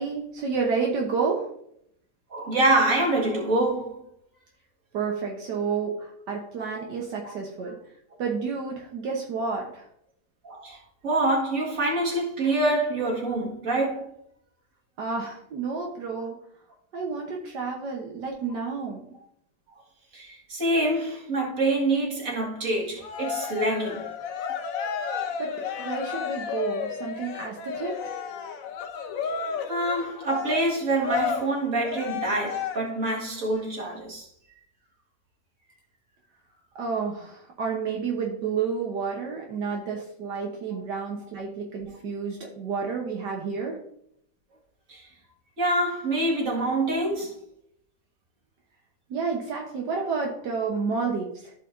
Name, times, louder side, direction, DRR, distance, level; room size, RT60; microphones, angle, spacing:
voice 1, 0.0-1.5 4.9-7.8 8.2-9.9 15.0-16.3 16.9-19.1 25.4-25.5 25.8-28.1 36.8-43.8 49.1-51.5, right 5 dB, 80° right, 1.7 m, -30 dB
voice 2, 2.3-4.0 6.8-6.9 7.2-7.3 10.4-14.1 19.7-19.8 20.1-24.1 29.7-34.3 44.9-45.1 45.6-47.4, right 2 dB, 50° right, 2.3 m, -26 dB
Cheering, 23.0-33.1, left 6 dB, 60° left, 1.1 m, -32 dB
14.0 x 4.9 x 2.6 m
omnidirectional pair, 1.8 m